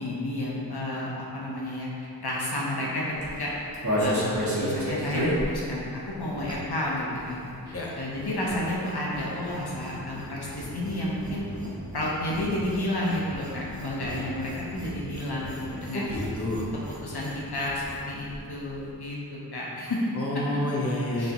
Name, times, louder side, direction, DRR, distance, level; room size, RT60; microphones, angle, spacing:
voice 1, 0.0-1.9 2.2-3.5 4.0-11.4 11.9-16.1 16.9-20.0 21.2-21.3, left 1 dB, 80° left, -5 dB, 1.0 m, -31 dB
sound 1, 3.1-6.8 7.1-18.0 18.3-18.4 18.6-18.9, equal, 45° right, 1.5 m, -33 dB
voice 2, 15.9-16.7 20.2-21.3, left 1 dB, 35° left, -4 dB, 1.0 m, -29 dB
9.1 x 3.4 x 3.1 m, 2.6 s
wide cardioid pair, 50°, 38 cm